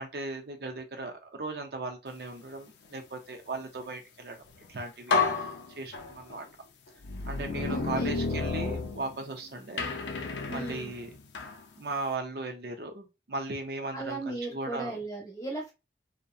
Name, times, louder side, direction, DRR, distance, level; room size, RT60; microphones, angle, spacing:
voice 1, 0.0-4.4 4.7-6.5 7.3-9.9 10.5-11.1 11.8-14.9, right 3 dB, 60° right, 0.5 m, -37 dB
sound 1, 4.5-4.7 5.1-6.4 7.0-9.4 9.8-11.6, left 4 dB, 85° left, 0.5 m, -31 dB
voice 2, 7.7-8.2 10.5-10.9 13.9-15.7, right 2 dB, 20° left, 0.8 m, -37 dB
2.6 x 2.1 x 2.3 m
head